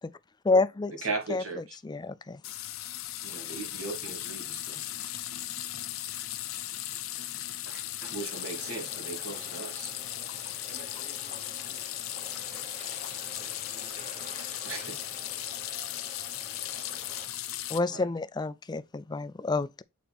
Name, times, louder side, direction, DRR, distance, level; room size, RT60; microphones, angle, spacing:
voice 1, 0.4-0.9 1.3-1.4 1.8-2.4 17.7-19.8, left 3 dB, 20° left, 0.4 m, -28 dB
voice 2, 1.0-1.8 3.2-4.8 7.7-9.9 14.6-15.0 17.9-18.1, right 4 dB, 85° right, 2.6 m, -38 dB
sound 1, 2.4-17.8, left 13 dB, 80° left, 0.7 m, -37 dB
sound 2, 8.2-17.3, right 3 dB, 30° right, 1.1 m, -50 dB
voice 3, 10.6-14.0, right 2 dB, 50° right, 2.2 m, -56 dB
7.7 x 4.1 x 4.2 m
head